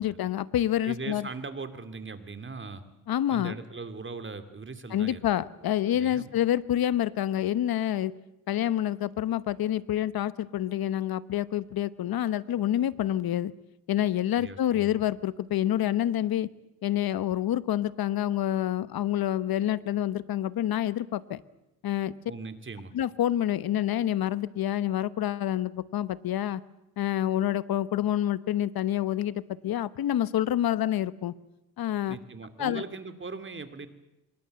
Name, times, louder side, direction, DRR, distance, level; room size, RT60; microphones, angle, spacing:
voice 1, 0.0-1.3 3.1-3.5 4.9-8.1 8.5-13.5 13.9-16.5 16.8-21.4 21.8-22.1 22.9-26.6 27.0-29.3 29.6-31.3 31.8-32.2 32.6-32.8, left 12 dB, 75° left, 17 dB, 1.0 m, -27 dB
voice 2, 0.8-2.8 3.3-5.2 5.9-6.3 14.3-15.0 22.3-22.9 32.1-33.9, right 4 dB, 30° right, 9 dB, 2.7 m, -40 dB
25.0 x 22.0 x 7.8 m, 0.94 s
cardioid pair, 85°, 37 cm